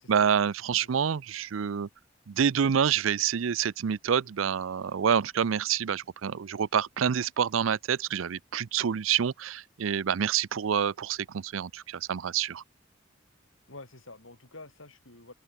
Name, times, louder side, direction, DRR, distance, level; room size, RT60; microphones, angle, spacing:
voice 1, 0.0-1.9 2.3-12.6, right 7 dB, 90° right, 0.5 m, -27 dB
voice 2, 13.7-15.3, left 2 dB, 90° left, 4.8 m, -48 dB
open air
head